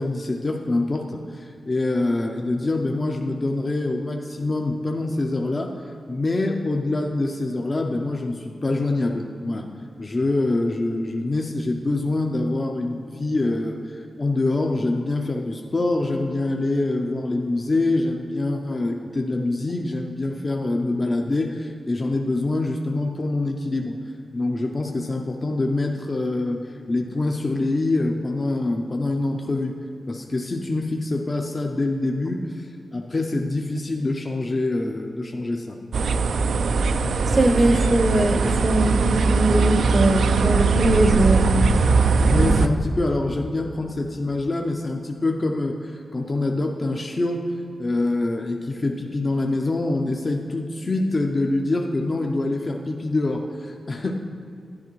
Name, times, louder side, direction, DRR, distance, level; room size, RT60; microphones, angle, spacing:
voice 1, 0.0-9.7 10.0-24.0 24.3-29.8 30.1-35.8 42.2-54.1, left 2 dB, 35° left, 2 dB, 0.5 m, -25 dB
sound 1, 35.9-42.7, right 4 dB, 85° right, 0.3 m, -20 dB
voice 2, 37.3-41.4, right 1 dB, 35° right, 8 dB, 0.7 m, -20 dB
11.0 x 10.5 x 3.1 m, 2.5 s
cardioid pair, 80°, 0 cm